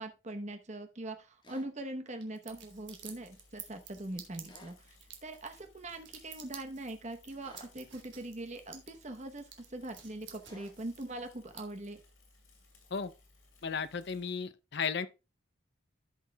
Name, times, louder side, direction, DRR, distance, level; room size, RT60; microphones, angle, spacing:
voice 1, 0.0-5.0 5.2-12.0, right 1 dB, 35° right, 0.9 m, -42 dB
sound 1, 1.4-1.7 4.4-4.8 7.4-7.7 10.4-10.7, left 2 dB, 20° left, 1.4 m, -55 dB
sound 2, 2.2-11.6, right 9 dB, 55° right, 1.5 m, -51 dB
Bicycle / Mechanisms, 2.5-14.3, left 2 dB, 90° left, 3.8 m, -63 dB
voice 2, 13.6-15.1, left 6 dB, 55° left, 0.5 m, -34 dB
14.0 x 5.6 x 2.3 m
head